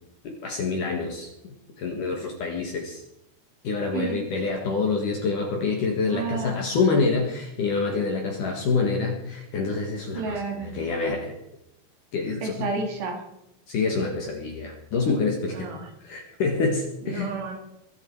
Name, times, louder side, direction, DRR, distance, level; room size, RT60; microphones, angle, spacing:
voice 1, 0.2-1.3 1.8-3.0 3.6-11.3 12.1-12.7 13.7-15.7 16.0-17.3, left 4 dB, 55° left, 1 dB, 2.8 m, -26 dB
voice 2, 3.9-4.2 6.1-6.6 10.1-10.8 12.4-13.2 15.5-15.9 17.0-17.6, right 4 dB, 70° right, 3 dB, 4.6 m, -31 dB
22.5 x 8.8 x 4.8 m, 0.84 s
omnidirectional pair, 5.1 m